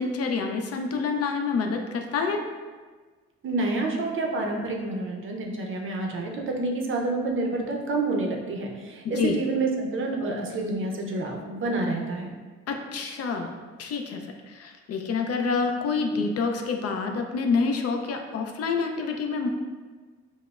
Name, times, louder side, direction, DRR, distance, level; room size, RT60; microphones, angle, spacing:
voice 1, 0.0-2.4 9.0-9.4 12.7-13.5 13.8-19.5, left 4 dB, 55° left, 4 dB, 0.4 m, -27 dB
voice 2, 3.4-12.3, right 2 dB, 45° right, 1 dB, 0.6 m, -28 dB
4.9 x 2.1 x 2.3 m, 1.4 s
cardioid pair, 90°, 30 cm